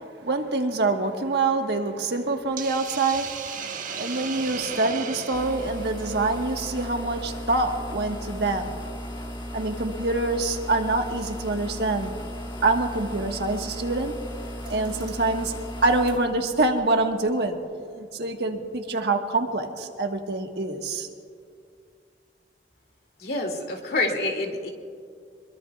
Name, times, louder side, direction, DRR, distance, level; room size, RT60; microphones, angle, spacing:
voice 1, 0.2-8.8 9.5-12.1 12.6-14.1 14.6-15.5 15.8-17.6 17.9-21.1, right 3 dB, 70° right, 3 dB, 1.4 m, -26 dB
Hiss, 2.6-6.8, right 6 dB, 50° right, 1.2 m, -36 dB
sound 1, 5.3-17.7, equal, 25° left, 1.5 m, -36 dB
voice 2, 23.2-24.7, left 2 dB, 60° left, 2 dB, 2.5 m, -27 dB
25.5 x 22.5 x 2.4 m, 2.3 s
head